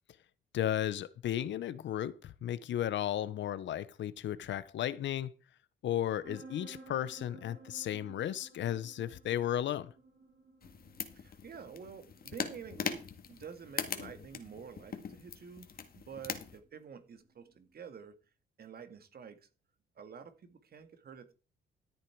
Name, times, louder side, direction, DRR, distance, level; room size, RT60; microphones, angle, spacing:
voice 1, 0.5-5.3 5.8-9.9, left 11 dB, 70° left, 0.8 m, -34 dB
sound 1, 6.2-17.7, right 3 dB, 80° right, 6.5 m, -57 dB
sound 2, 10.6-16.6, left 6 dB, 50° left, 2.0 m, -41 dB
voice 2, 11.1-15.7 15.9-18.2 18.6-19.5 20.0-21.3, right 6 dB, 50° right, 2.0 m, -49 dB
14.0 x 8.4 x 4.6 m
cardioid pair, 90°, 20 cm